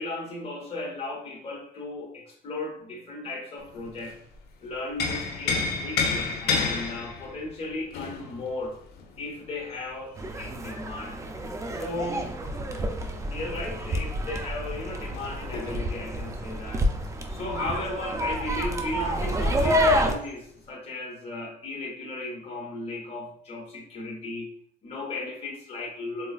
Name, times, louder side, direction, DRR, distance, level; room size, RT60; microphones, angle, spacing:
voice 1, 0.0-4.2 4.6-8.8 9.2-11.2 11.7-12.4 13.3-24.5 24.8-26.3, left 2 dB, 35° left, -3 dB, 1.0 m, -36 dB
sound 1, 3.6-4.4 4.7-10.2 12.1-17.9 18.2-18.3 18.7-19.4 20.2-20.4, left 4 dB, 70° left, 0.6 m, -32 dB
sound 2, 10.2-20.1, equal, 20° right, 0.4 m, -28 dB
3.9 x 2.3 x 2.3 m, 0.64 s
cardioid pair, 110°, 17 cm